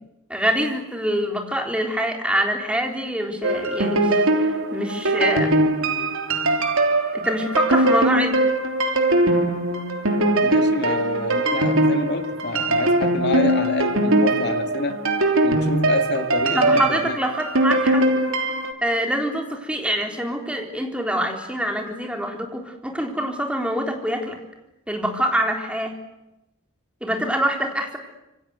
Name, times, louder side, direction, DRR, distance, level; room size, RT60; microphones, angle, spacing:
voice 1, 0.3-4.2 4.7-5.5 7.1-8.4 16.5-18.1 18.8-24.4 24.9-26.0 27.0-28.0, equal, 5° right, 2 dB, 3.8 m, -25 dB
sound 1, 3.4-18.7, right 2 dB, 75° right, 3.3 m, -21 dB
voice 2, 10.4-15.0 15.4-17.2, left 3 dB, 55° left, 7 dB, 2.3 m, -28 dB
27.5 x 24.5 x 8.2 m, 0.92 s
head